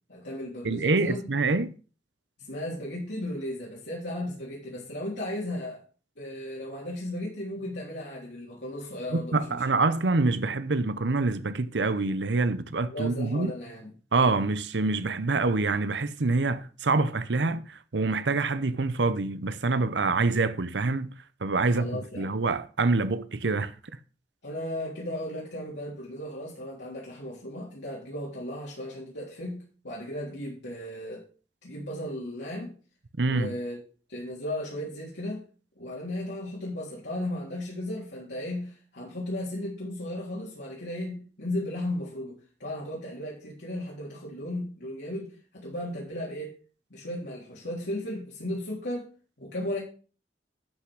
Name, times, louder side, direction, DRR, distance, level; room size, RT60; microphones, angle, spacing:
voice 1, 0.1-1.3 2.5-5.8 6.2-9.6 12.8-13.9 21.7-22.4 24.4-31.3 31.6-32.7 33.2-33.8 34.1-35.4 35.8-46.5 46.9-49.1 49.4-49.8, left 1 dB, 75° left, 3.8 m, -35 dB
voice 2, 0.6-1.7 9.1-13.5 14.1-21.1 21.4-23.7 33.2-33.5, right 3 dB, 85° right, 0.8 m, -26 dB
12.0 x 5.9 x 6.2 m
head